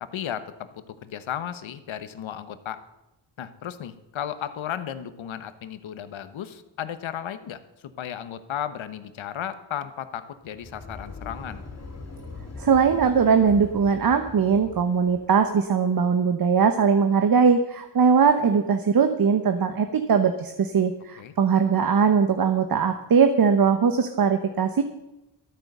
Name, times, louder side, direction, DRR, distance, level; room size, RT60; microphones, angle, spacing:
voice 1, 0.0-2.8 3.4-11.6 21.2-21.3, left 9 dB, 85° left, 12 dB, 1.1 m, -34 dB
sound 1, 10.4-15.6, left 3 dB, 35° left, 2.7 m, -41 dB
voice 2, 12.6-24.8, right 6 dB, 50° right, 8 dB, 1.0 m, -20 dB
12.5 x 9.1 x 6.6 m, 0.93 s
cardioid pair, 75°, 46 cm